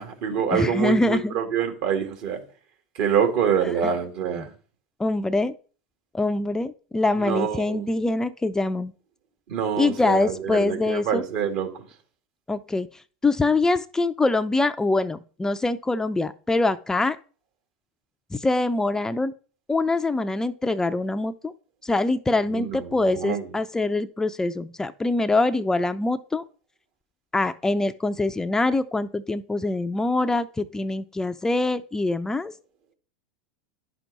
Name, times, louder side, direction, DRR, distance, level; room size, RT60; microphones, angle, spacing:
voice 1, 0.0-2.4 2.9-4.5 7.2-7.9 9.5-11.8 22.5-23.5, right 7 dB, 60° right, 2.2 m, -26 dB
voice 2, 0.5-1.4 3.6-3.9 4.4-4.5 5.0-5.5 6.1-8.9 9.8-11.2 12.5-17.2 18.3-19.3 19.7-21.5 21.8-26.4 27.3-32.5, left 2 dB, 10° left, 0.5 m, -24 dB
10.5 x 5.9 x 4.0 m
hypercardioid pair, 100°, 5 cm